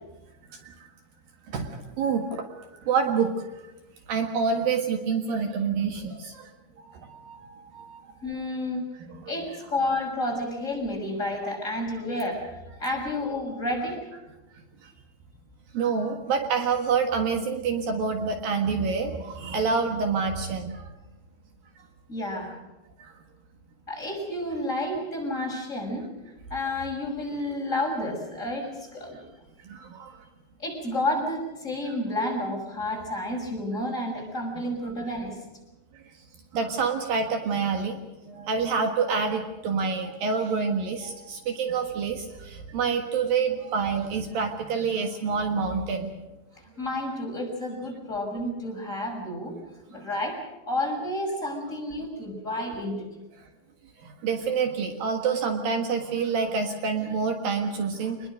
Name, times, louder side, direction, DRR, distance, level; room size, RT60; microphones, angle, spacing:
voice 1, 1.5-2.5 2.8-3.3 4.1-6.5 6.8-8.0 9.0-9.4 14.8-14.9 15.7-20.9 23.0-23.1 29.6-30.2 36.5-38.0 38.3-46.1 49.9-50.0 54.0-58.3, right 5 dB, 65° right, 5 dB, 3.3 m, -27 dB
voice 2, 8.2-8.8 9.3-12.5 12.8-14.0 22.1-22.6 23.9-26.1 26.5-29.2 30.6-35.4 46.8-49.5 49.9-53.1, left 1 dB, 20° left, -1 dB, 6.4 m, -30 dB
26.0 x 21.0 x 6.5 m, 1.1 s
omnidirectional pair, 4.6 m